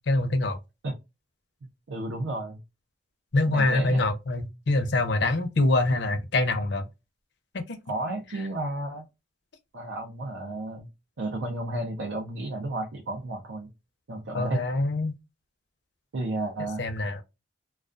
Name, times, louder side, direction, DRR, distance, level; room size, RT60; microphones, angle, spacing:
voice 1, 0.1-0.6 3.3-6.9 7.5-7.8 14.3-15.1 16.6-17.2, left 2 dB, 60° left, 0.5 m, -25 dB
voice 2, 1.9-2.6 3.5-4.0 7.9-9.0 9.7-10.9 11.2-13.7 14.1-14.7 16.1-16.8, right 2 dB, 85° right, 0.6 m, -32 dB
2.3 x 2.2 x 2.4 m
head